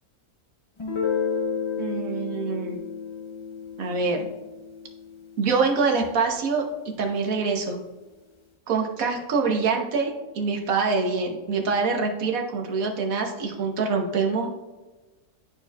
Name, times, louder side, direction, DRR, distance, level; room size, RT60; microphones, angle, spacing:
Guitar, 0.8-6.3, left 6 dB, 35° left, 0.5 m, -32 dB
voice 1, 1.8-2.8 3.8-4.3 5.4-7.8 8.7-14.5, right 4 dB, 70° right, 3 dB, 1.3 m, -25 dB
11.5 x 4.6 x 2.3 m, 1.2 s
omnidirectional pair, 1.6 m